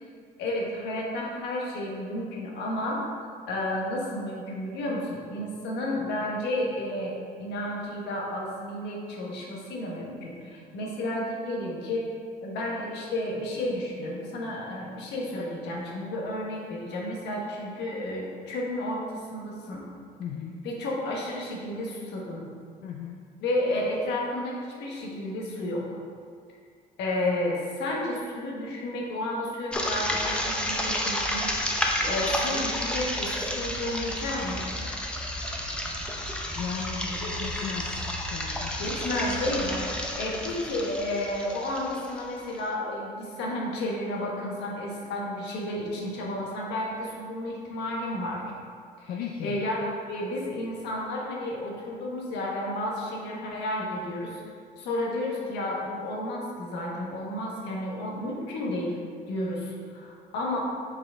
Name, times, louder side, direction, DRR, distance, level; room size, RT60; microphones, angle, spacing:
voice 1, 0.4-3.0 3.5-7.1 7.4-12.1 12.4-19.8 20.6-22.4 23.4-25.9 27.0-31.5 32.0-34.7 37.1-37.3 38.8-39.9 40.1-48.4 49.0-49.1 49.4-54.4 54.8-59.0 59.3-60.6, left 1 dB, 85° left, -2 dB, 1.3 m, -32 dB
voice 2, 20.2-20.6 22.8-23.3 36.6-38.8 49.1-49.6, left 7 dB, 65° left, 1 dB, 0.5 m, -36 dB
sound 1, 29.7-42.6, left 1 dB, 5° left, 0.7 m, -31 dB
5.6 x 4.7 x 3.7 m, 2.2 s
cardioid pair, 110°, 17 cm